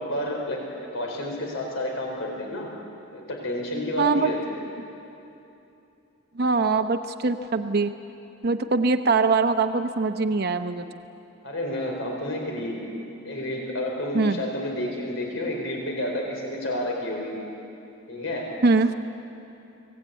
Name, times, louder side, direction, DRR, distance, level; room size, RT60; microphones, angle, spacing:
voice 1, 0.0-2.7 3.1-4.6 11.4-12.8 13.2-17.4 18.1-18.6, left 1 dB, 70° left, 0 dB, 4.2 m, -30 dB
voice 2, 4.0-4.3 6.4-7.9 8.4-10.9 14.1-14.4 18.6-18.9, right 3 dB, 55° right, 7 dB, 0.8 m, -22 dB
24.5 x 18.5 x 9.1 m, 2.8 s
head